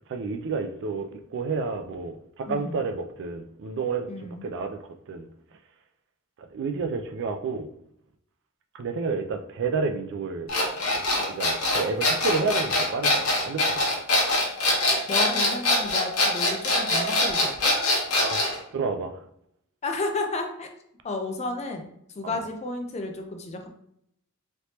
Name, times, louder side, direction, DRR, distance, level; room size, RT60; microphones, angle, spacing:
voice 1, 0.1-4.1 4.4-5.3 6.4-7.7 8.7-10.5 10.9-11.0 11.3-13.8 18.2-19.2 22.2-22.4, right 4 dB, 55° right, 0.3 m, -30 dB
voice 2, 2.5-2.8 4.1-4.5 15.1-17.7 19.8-20.7 21.0-21.9 22.1-23.7, left 2 dB, 30° left, 0.4 m, -32 dB
sound 1, 10.5-18.6, left 2 dB, 85° left, 0.9 m, -23 dB
3.2 x 2.9 x 2.8 m
head